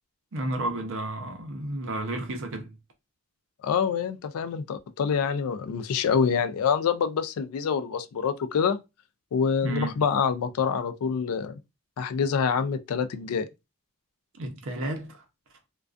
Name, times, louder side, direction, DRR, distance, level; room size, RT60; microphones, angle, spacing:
voice 1, 0.3-2.8 9.6-9.9 14.4-15.2, right 1 dB, 60° right, 0.6 m, -32 dB
voice 2, 3.6-8.8 9.3-11.6 12.0-13.5, left 6 dB, 75° left, 0.3 m, -26 dB
2.3 x 2.2 x 2.4 m
head